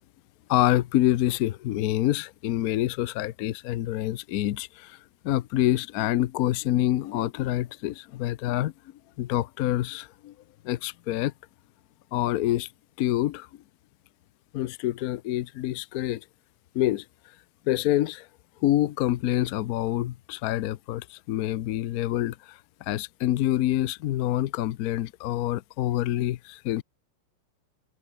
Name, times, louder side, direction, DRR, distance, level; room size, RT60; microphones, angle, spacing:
voice 1, 0.5-5.0 5.2-8.7 9.2-10.3 10.6-11.3 12.1-12.7 13.0-13.5 14.5-16.2 16.7-17.0 17.7-18.3 18.6-22.6 22.9-26.8, left 14 dB, 85° left, 0.8 m, -26 dB
omnidirectional pair, 2.4 m